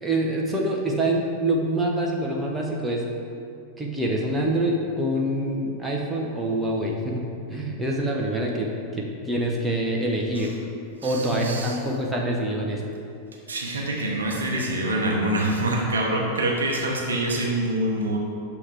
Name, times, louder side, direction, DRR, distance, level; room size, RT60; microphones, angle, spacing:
voice 1, 0.0-3.1 3.8-10.5 11.0-12.8, right 1 dB, 10° right, -2 dB, 0.7 m, -26 dB
voice 2, 11.0-11.8 13.5-18.2, right 1 dB, 70° right, -1 dB, 0.9 m, -25 dB
6.3 x 3.6 x 4.5 m, 2.5 s
figure-of-eight pair, 90°, 0 cm